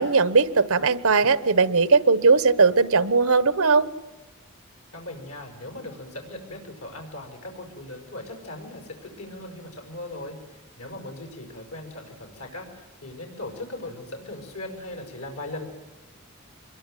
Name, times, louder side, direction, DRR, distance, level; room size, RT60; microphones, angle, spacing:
voice 1, 0.0-3.9, right 4 dB, 70° right, 16 dB, 1.1 m, -19 dB
voice 2, 4.9-15.6, left 2 dB, 80° left, 3 dB, 6.1 m, -39 dB
25.5 x 22.5 x 9.2 m, 1.1 s
head